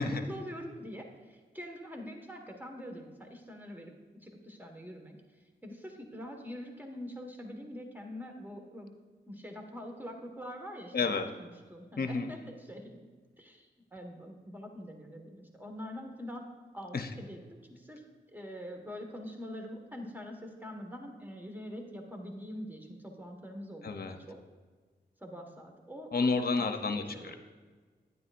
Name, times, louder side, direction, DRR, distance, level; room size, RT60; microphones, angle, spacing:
voice 1, 0.0-3.9 4.2-5.2 5.6-8.9 9.3-13.1 13.4-16.4 16.7-17.4 17.7-18.0 18.3-24.4 25.2-26.7 27.1-27.4, equal, 10° right, 2 dB, 1.6 m, -44 dB
voice 2, 10.9-11.3 12.0-12.3 16.9-17.1 23.8-24.2 26.1-27.4, left 4 dB, 55° left, 6 dB, 0.8 m, -30 dB
9.6 x 9.6 x 2.6 m, 1.4 s
cardioid pair, 40°, 19 cm